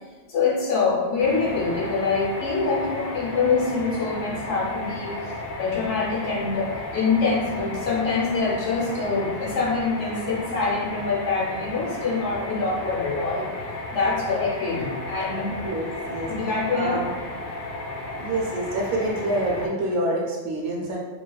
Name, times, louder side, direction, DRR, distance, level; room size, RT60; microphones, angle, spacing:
voice 1, 0.3-5.3 5.6-13.5 13.9-15.6 16.2-17.1, left 4 dB, 85° left, -4 dB, 1.0 m, -25 dB
sound 1, 1.2-19.7, left 1 dB, 65° left, 0.7 m, -34 dB
voice 2, 15.5-16.3 16.7-17.1 18.2-21.0, right 1 dB, 70° right, -2 dB, 0.8 m, -27 dB
2.7 x 2.2 x 2.3 m, 1.3 s
omnidirectional pair, 1.2 m